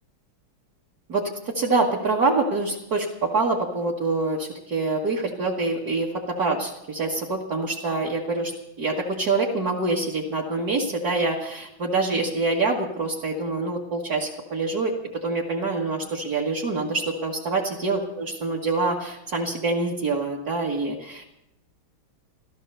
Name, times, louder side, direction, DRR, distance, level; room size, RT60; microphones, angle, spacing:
voice 1, 1.1-8.5 8.8-14.9 15.2-21.2, right 3 dB, 50° right, -4 dB, 2.0 m, -25 dB
15.0 x 13.5 x 6.7 m, 0.85 s
omnidirectional pair, 2.2 m